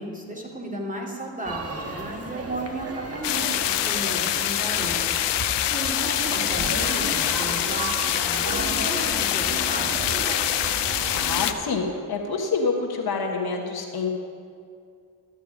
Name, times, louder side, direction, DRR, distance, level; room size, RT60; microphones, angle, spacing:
voice 1, 0.0-3.5 3.8-5.1 5.7-10.2, right 1 dB, 20° right, -1 dB, 2.3 m, -34 dB
sound 1, 1.4-11.4, right 3 dB, 35° right, 1.4 m, -33 dB
sound 2, 3.2-11.5, left 12 dB, 85° left, 0.6 m, -25 dB
voice 2, 11.1-14.1, left 4 dB, 60° left, 2 dB, 1.3 m, -27 dB
12.5 x 6.9 x 5.0 m, 2.3 s
supercardioid pair, 50°, 41 cm